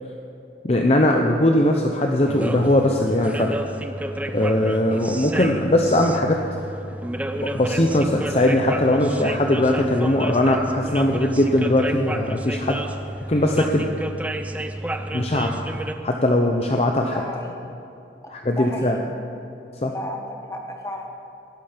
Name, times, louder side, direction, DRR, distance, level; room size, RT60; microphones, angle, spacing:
voice 1, 0.6-3.5 4.3-6.4 7.4-12.8 13.3-13.9 15.1-15.6 16.0-17.2 18.3-19.0 19.8-19.9, left 1 dB, 35° left, 2 dB, 0.7 m, -20 dB
sound 1, 2.2-15.9, right 1 dB, 10° right, 0.5 m, -31 dB
voice 2, 17.1-17.5 18.5-19.1 19.9-21.1, left 1 dB, 15° left, 1 dB, 1.4 m, -33 dB
16.5 x 11.5 x 5.1 m, 2.7 s
head